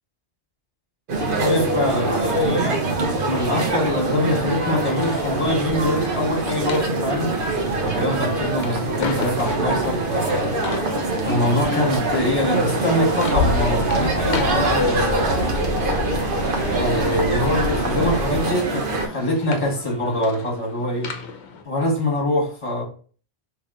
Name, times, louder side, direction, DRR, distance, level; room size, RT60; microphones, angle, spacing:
sound 1, 1.1-19.1, right 2 dB, 55° right, 0.9 m, -24 dB
voice 1, 1.4-2.8 3.2-7.4 7.8-10.6 11.2-15.6 16.7-21.1 21.6-22.8, left 1 dB, 35° left, 1.3 m, -24 dB
sound 2, 4.8-21.6, left 5 dB, 80° left, 0.9 m, -37 dB
sound 3, 13.3-18.4, left 2 dB, 85° right, 1.9 m, -27 dB
3.4 x 2.9 x 3.7 m
omnidirectional pair, 1.1 m